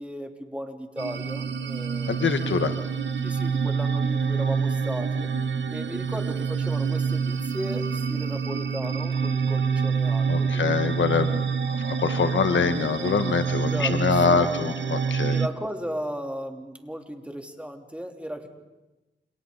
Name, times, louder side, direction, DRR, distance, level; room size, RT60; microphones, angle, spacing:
voice 1, 0.0-2.2 3.2-5.3 5.7-10.9 13.6-14.6 15.3-18.5, equal, 5° right, 3 dB, 3.1 m, -35 dB
sound 1, 1.0-15.5, right 6 dB, 75° right, 1.0 m, -27 dB
voice 2, 2.1-2.8 10.3-11.5 11.8-15.4, left 5 dB, 85° left, 9 dB, 1.3 m, -24 dB
29.5 x 28.5 x 4.0 m, 1.1 s
cardioid pair, 45°, 19 cm